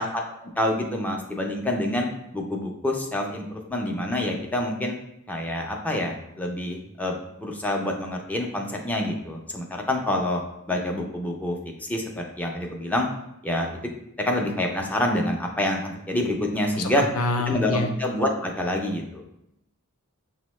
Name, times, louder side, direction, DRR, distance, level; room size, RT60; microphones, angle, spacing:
voice 1, 0.0-2.1 2.3-5.0 5.3-10.4 10.7-13.1 13.4-13.7 14.2-17.0 17.5-19.2, left 1 dB, 5° left, 1 dB, 0.4 m, -27 dB
voice 2, 17.1-17.9, left 3 dB, 80° left, 5 dB, 0.5 m, -26 dB
6.0 x 2.1 x 3.0 m, 0.81 s
head